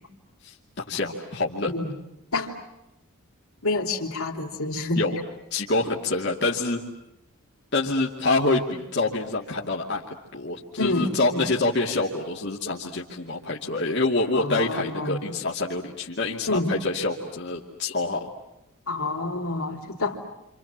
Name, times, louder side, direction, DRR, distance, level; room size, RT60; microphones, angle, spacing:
voice 1, 0.4-1.7 5.0-5.2 5.5-6.8 7.7-18.3, left 2 dB, 50° left, -3 dB, 2.5 m, -26 dB
voice 2, 3.6-5.0 10.8-11.5 14.3-15.4 16.5-16.8 18.9-20.2, left 2 dB, 75° left, 2 dB, 3.7 m, -28 dB
29.5 x 27.0 x 7.5 m, 0.91 s
head